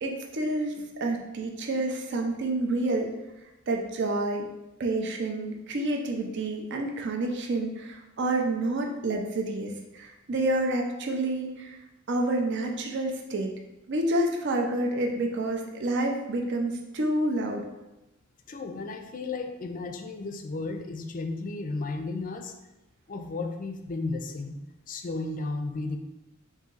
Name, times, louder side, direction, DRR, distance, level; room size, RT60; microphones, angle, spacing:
voice 1, 0.0-3.1 3.7-4.4 4.8-11.8 12.1-13.5 13.9-17.6, right 2 dB, 60° right, 2 dB, 0.5 m, -28 dB
voice 2, 18.5-22.5 23.1-24.6 24.9-26.0, left 3 dB, 40° left, 6 dB, 0.4 m, -34 dB
4.0 x 2.7 x 3.8 m, 0.99 s
head